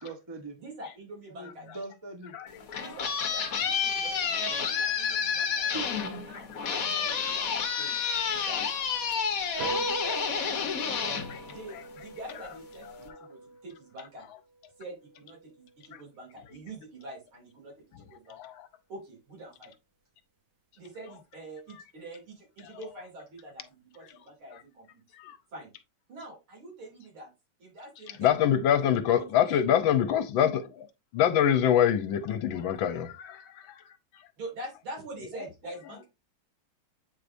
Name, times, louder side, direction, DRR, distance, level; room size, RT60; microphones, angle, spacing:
voice 1, 0.0-0.6 1.4-2.3 5.7-5.8, right 3 dB, 25° right, 0.6 m, -40 dB
voice 2, 0.6-1.7 2.8-5.7 6.2-8.0 8.3-8.6 9.7-10.8 11.5-14.3 14.8-18.5 18.9-19.7 20.8-25.0 25.5-25.7 26.1-27.3 27.6-28.4 28.7-29.7 34.4-36.1, right 1 dB, 90° right, 3.7 m, -45 dB
voice 3, 2.3-2.8 7.5-7.6 9.5-9.7 11.3-11.4 18.3-18.5 25.2-25.4 28.2-30.9 31.1-33.4, left 9 dB, 75° left, 1.4 m, -25 dB
sound 1, 2.5-12.1, left 6 dB, 50° left, 1.2 m, -30 dB
sound 2, 9.6-16.3, right 2 dB, 70° right, 0.8 m, -41 dB
8.4 x 4.8 x 2.6 m
omnidirectional pair, 2.2 m